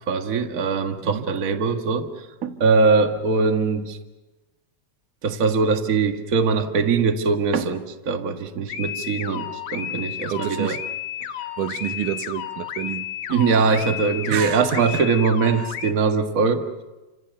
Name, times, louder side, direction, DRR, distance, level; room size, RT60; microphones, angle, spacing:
voice 1, 0.1-2.1 2.4-4.0 5.2-10.8 13.3-16.8, right 4 dB, 35° right, 1.6 m, -22 dB
sound 1, 8.7-15.9, left 10 dB, 65° left, 2.2 m, -32 dB
voice 2, 10.3-10.8 11.6-13.1 14.3-15.0 15.6-15.7, right 11 dB, 90° right, 2.7 m, -29 dB
29.5 x 26.5 x 6.8 m
omnidirectional pair, 3.5 m